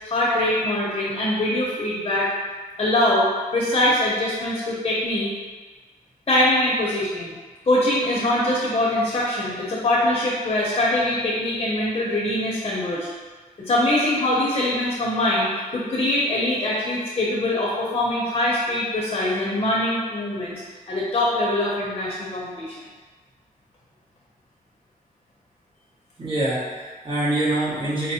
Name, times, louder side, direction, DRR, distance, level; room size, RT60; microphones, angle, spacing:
voice 1, 0.0-2.3 2.8-3.2 3.5-5.3 6.3-7.3 7.7-13.1 13.7-20.6 20.9-22.8, left 1 dB, 35° left, -5 dB, 0.7 m, -23 dB
voice 2, 26.2-28.1, right 1 dB, 35° right, -9 dB, 1.2 m, -25 dB
5.0 x 2.0 x 2.8 m, 1.4 s
wide cardioid pair, 110°, 15 cm